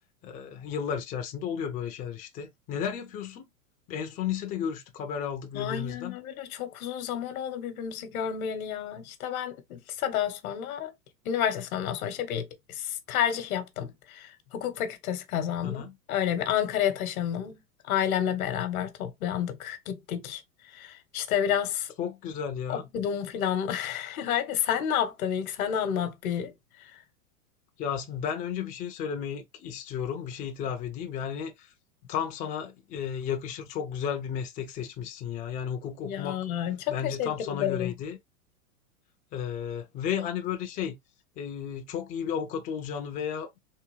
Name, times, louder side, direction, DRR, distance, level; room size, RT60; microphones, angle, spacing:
voice 1, 0.2-3.5 3.9-6.2 15.6-16.0 22.0-22.8 27.8-31.7 32.1-36.4 36.9-38.2 39.3-41.0 41.4-43.5, left 8 dB, 20° left, 0.5 m, -33 dB
voice 2, 5.5-10.9 11.2-17.6 17.9-20.4 20.7-21.9 22.7-26.5 26.8-27.0 36.0-37.9, left 9 dB, 70° left, 1.0 m, -30 dB
3.6 x 2.6 x 3.0 m
hypercardioid pair, 115°, 45 cm